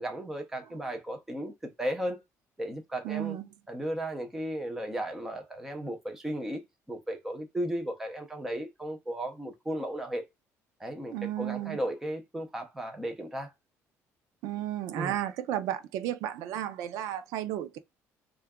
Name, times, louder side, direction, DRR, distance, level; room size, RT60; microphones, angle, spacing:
voice 1, 0.0-2.2 2.6-3.4 3.7-6.6 6.9-10.2 10.8-13.5 15.0-15.1, right 1 dB, 5° right, 0.6 m, -35 dB
voice 2, 3.0-3.5 11.1-11.8 14.4-17.8, right 12 dB, 80° right, 0.5 m, -33 dB
3.8 x 2.3 x 3.5 m
cardioid pair, 180°, 6 cm